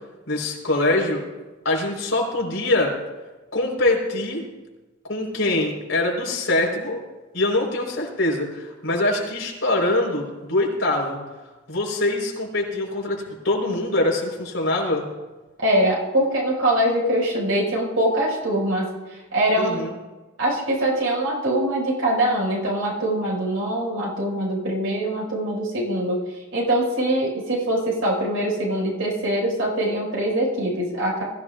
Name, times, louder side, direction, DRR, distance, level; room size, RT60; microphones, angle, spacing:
voice 1, 0.3-1.2 1.6-3.0 3.5-4.4 5.1-7.0 7.3-11.2 11.7-15.1 19.6-19.9, left 2 dB, 70° left, -2 dB, 4.4 m, -23 dB
voice 2, 15.6-18.9 19.3-19.8 20.4-31.2, right 1 dB, 80° right, -4 dB, 5.7 m, -23 dB
22.0 x 15.0 x 2.5 m, 1.2 s
head